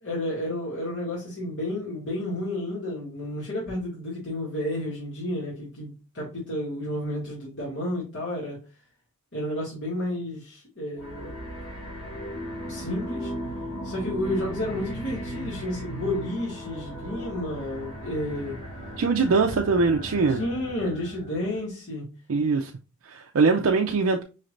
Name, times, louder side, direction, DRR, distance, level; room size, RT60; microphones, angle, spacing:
voice 1, 0.0-8.6 9.3-11.3 12.6-13.3 13.8-18.6 20.3-22.1, left 1 dB, 55° left, 2.1 m, -31 dB
sound 1, 11.0-21.6, equal, 85° left, 2.5 m, -37 dB
voice 2, 19.0-20.4 22.3-22.7 23.0-24.2, right 4 dB, 65° right, 0.5 m, -22 dB
5.6 x 3.2 x 2.5 m
head